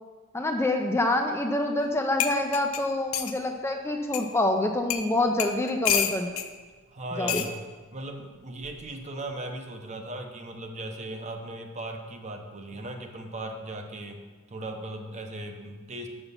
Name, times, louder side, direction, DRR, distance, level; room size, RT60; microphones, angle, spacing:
voice 1, 0.3-6.3 7.2-7.4, left 2 dB, 10° left, 3 dB, 0.4 m, -26 dB
sound 1, 1.8-1.9 2.2-3.4 4.1-4.2 4.9-5.1 5.4-6.5 7.3-7.5 8.6-8.9, left 9 dB, 85° left, 0.6 m, -28 dB
voice 2, 6.9-7.6 7.9-14.2 14.5-16.1, right 1 dB, 35° right, 4 dB, 0.8 m, -37 dB
6.9 x 5.8 x 5.4 m, 1.4 s
head